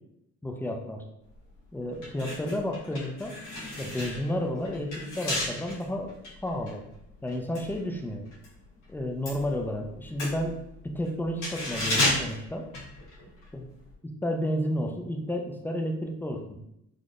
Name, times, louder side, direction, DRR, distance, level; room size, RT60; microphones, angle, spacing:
voice 1, 0.4-1.0 1.7-3.3 3.8-6.2 6.4-6.8 7.2-8.2 8.9-10.5 10.8-12.7 13.5-13.6 14.2-16.4, equal, 5° left, 3 dB, 0.4 m, -31 dB
sound 1, 1.3-1.5 1.9-8.5 8.8-13.5 13.8-13.9, left 1 dB, 85° left, 1.3 m, -33 dB
3.6 x 2.5 x 2.4 m, 0.79 s
cardioid pair, 90°, 30 cm